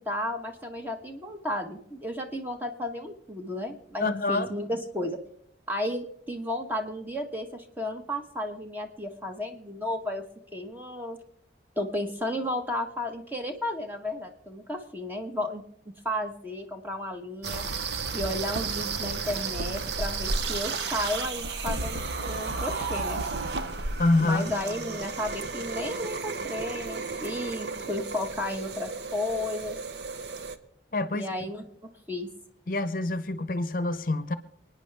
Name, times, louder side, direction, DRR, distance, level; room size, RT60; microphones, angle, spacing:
voice 1, 0.0-5.2 5.7-10.2 10.5-11.2 11.8-15.6 16.0-17.6 18.1-23.2 24.2-29.8 31.1-32.3, left 1 dB, 10° right, 4 dB, 1.2 m, -33 dB
voice 2, 4.0-4.5 24.0-24.5 30.9-31.3 32.7-34.3, left 2 dB, 50° left, 13 dB, 0.7 m, -26 dB
sound 1, 17.4-30.6, right 4 dB, 75° right, 0.9 m, -33 dB
28.5 x 9.6 x 3.4 m, 0.73 s
head